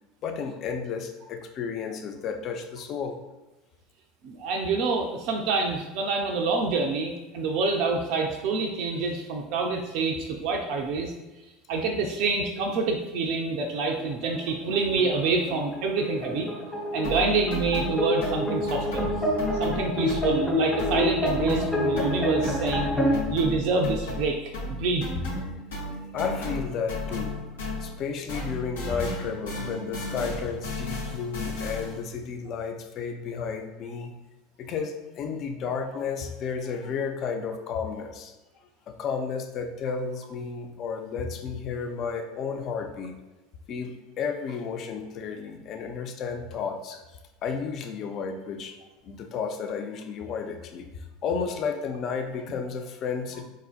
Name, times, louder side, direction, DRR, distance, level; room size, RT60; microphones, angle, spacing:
voice 1, 0.2-3.2 16.9-17.0 25.3-27.4 27.8-34.1 34.6-38.3 38.9-43.1 43.7-47.0 47.4-48.8 49.0-53.4, left 5 dB, 45° left, 5 dB, 0.4 m, -32 dB
voice 2, 4.2-11.1 11.7-16.5 16.9-19.1 19.6-22.9 23.3-24.4 24.7-25.1, right 4 dB, 55° right, 2 dB, 0.3 m, -27 dB
sound 1, 13.8-23.2, left 1 dB, 20° left, 1.1 m, -28 dB
sound 2, 17.0-20.5 20.8-28.0 28.3-32.1, left 1 dB, 75° left, 0.7 m, -34 dB
3.7 x 2.4 x 2.3 m, 1.1 s
hypercardioid pair, 75°, 0 cm